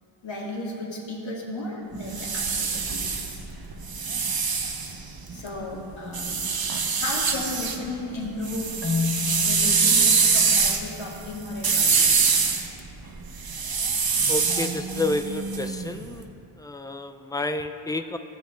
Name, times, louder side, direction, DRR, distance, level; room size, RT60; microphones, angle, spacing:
voice 1, 0.2-3.4 5.3-6.5 6.9-8.8 9.4-12.2, left 2 dB, 70° left, -3 dB, 2.2 m, -34 dB
sound 1, 1.9-5.5 6.1-7.8 8.1-16.0, right 5 dB, 50° right, 0.9 m, -24 dB
Marimba xylophone, 8.8-11.8, left 6 dB, 30° left, 1.0 m, -32 dB
voice 2, 14.3-16.3 16.6-18.2, left 2 dB, 10° left, 8 dB, 0.4 m, -30 dB
16.0 x 7.8 x 2.5 m, 2.7 s
cardioid pair, 60°, 47 cm